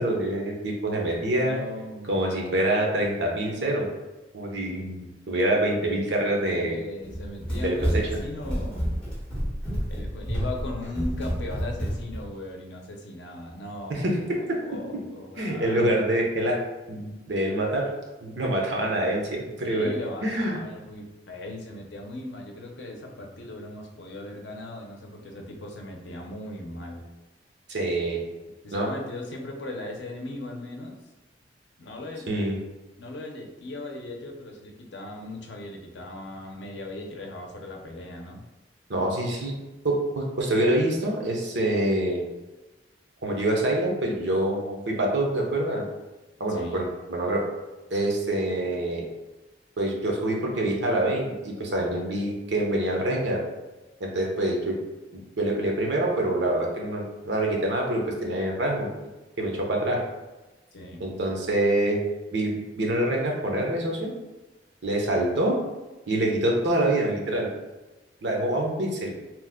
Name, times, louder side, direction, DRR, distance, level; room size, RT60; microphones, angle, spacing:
voice 1, 0.0-1.6 2.1-3.9 4.3-6.8 7.6-8.0 13.9-14.6 15.4-16.6 16.9-17.9 18.2-19.9 20.2-20.6 27.7-28.2 28.7-28.9 32.3-32.6 38.9-39.5 39.8-42.2 43.2-45.8 46.4-47.4 47.9-49.0 49.8-53.4 54.0-54.8 55.1-58.9 59.4-60.0 61.0-62.0 62.3-64.1 64.8-65.6 66.1-67.5 68.2-69.1, right 1 dB, 85° right, 0 dB, 0.7 m, -26 dB
voice 2, 1.3-2.2 6.5-8.9 9.9-14.1 14.6-15.8 19.6-27.1 28.6-31.0 31.8-32.4 33.0-38.4 46.5-46.8 60.7-61.1, left 1 dB, 80° left, 2 dB, 0.5 m, -38 dB
Run, 7.0-12.2, equal, 5° left, 1.1 m, -29 dB
2.9 x 2.1 x 3.5 m, 1.1 s
head